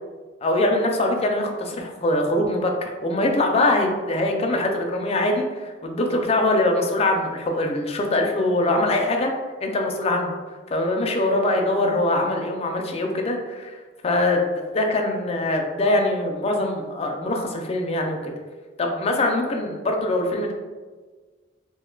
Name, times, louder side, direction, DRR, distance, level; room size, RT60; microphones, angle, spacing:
voice 1, 0.4-9.3 9.6-10.4 10.7-18.3 18.8-20.5, left 1 dB, 35° left, 2 dB, 0.4 m, -23 dB
2.5 x 2.2 x 3.7 m, 1.4 s
head